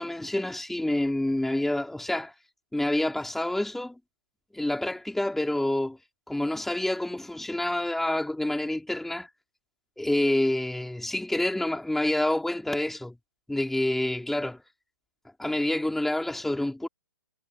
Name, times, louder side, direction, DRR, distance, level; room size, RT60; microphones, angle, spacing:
voice 1, 0.0-2.3 2.7-4.0 4.5-6.0 6.3-9.3 10.0-13.2 13.5-14.6 15.4-16.9, left 1 dB, ahead, 4.8 m, -28 dB
figure-of-eight pair, 120°, 12 cm